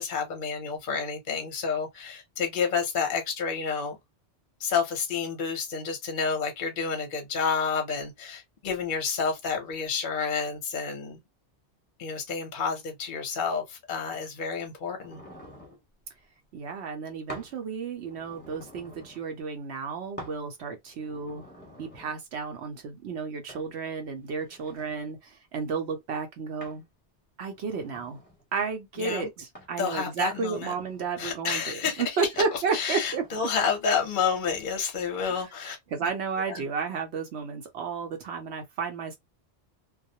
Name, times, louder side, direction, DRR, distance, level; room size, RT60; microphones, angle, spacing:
voice 1, 0.0-4.0 4.6-11.2 12.0-15.2 29.0-29.3 29.8-30.7 31.2-32.2 32.7-36.1 36.5-36.6, left 6 dB, 50° left, 0.7 m, -30 dB
sound 1, 15.0-15.8 17.3-17.6 18.0-19.3 20.2-20.4 20.9-22.2 23.5-23.7 24.3-25.1 26.6-26.9 27.5-28.4 29.5-29.8 30.4-31.2 32.3-32.5 33.0-33.4, equal, 10° left, 1.0 m, -47 dB
voice 2, 16.5-21.4 21.8-26.9 27.4-28.2 28.5-33.2 35.3-35.5 35.9-39.2, right 5 dB, 70° right, 0.8 m, -32 dB
2.3 x 2.0 x 2.6 m
omnidirectional pair, 1.2 m